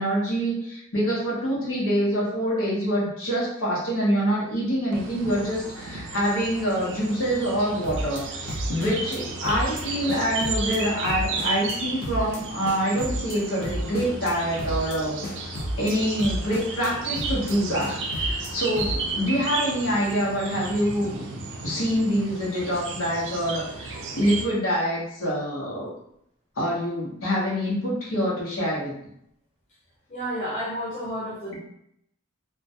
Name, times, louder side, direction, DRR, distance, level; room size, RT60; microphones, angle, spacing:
voice 1, 0.0-15.2 15.4-21.2 21.6-25.9 26.6-28.9, equal, 75° left, -6 dB, 0.8 m, -26 dB
sound 1, 4.9-24.4, right 3 dB, 60° right, 0.4 m, -34 dB
sound 2, 7.8-8.2 8.5-9.2 9.4-9.8 10.1-10.8 11.1-11.7 12.0-12.4 12.7-13.4 13.6-14.3 14.6-15.0 15.2-15.9 16.2-16.9 17.2-17.5 17.8-18.5 18.8-19.1, equal, 50° left, 0.5 m, -31 dB
voice 2, 30.1-31.6, equal, 35° left, -7 dB, 0.9 m, -31 dB
2.2 x 2.1 x 2.7 m, 0.74 s
head